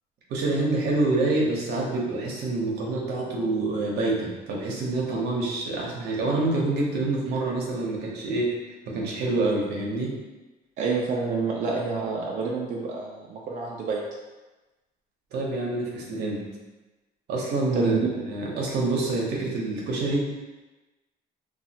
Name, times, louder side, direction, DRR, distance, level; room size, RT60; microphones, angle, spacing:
voice 1, 0.3-8.5 8.8-10.1 15.3-16.5 17.3-18.0 18.3-20.3, right 2 dB, 75° right, -2 dB, 0.8 m, -26 dB
voice 2, 10.8-14.0 17.7-18.0, right 4 dB, 50° right, -3 dB, 0.5 m, -28 dB
3.0 x 2.3 x 2.8 m, 1.1 s
cardioid pair, 110°, 17 cm